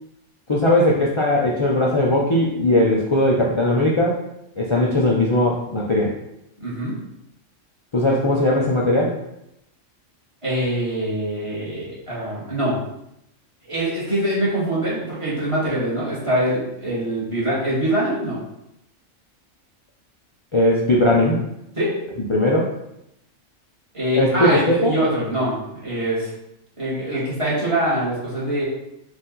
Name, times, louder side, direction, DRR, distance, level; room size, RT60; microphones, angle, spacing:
voice 1, 0.5-4.2 4.6-6.1 7.9-9.2 20.5-21.4 22.3-22.7 24.2-24.9, left 1 dB, 55° left, -3 dB, 0.3 m, -19 dB
voice 2, 6.6-7.0 10.4-12.8 13.6-18.4 21.7-21.9 23.9-26.3 26.8-28.6, right 1 dB, 25° right, -8 dB, 1.7 m, -24 dB
4.4 x 2.6 x 3.8 m, 0.82 s
omnidirectional pair, 1.3 m